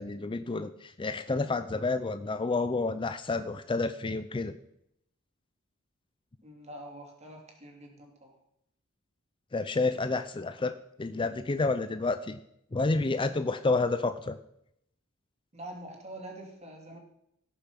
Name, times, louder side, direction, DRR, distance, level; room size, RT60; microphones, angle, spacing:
voice 1, 0.0-4.6 9.5-10.7 11.0-12.4 12.7-14.4, left 3 dB, 25° left, 11 dB, 0.5 m, -29 dB
voice 2, 6.4-8.4 15.5-17.0, right 1 dB, 30° right, 1 dB, 3.0 m, -45 dB
16.5 x 6.9 x 5.8 m, 0.77 s
head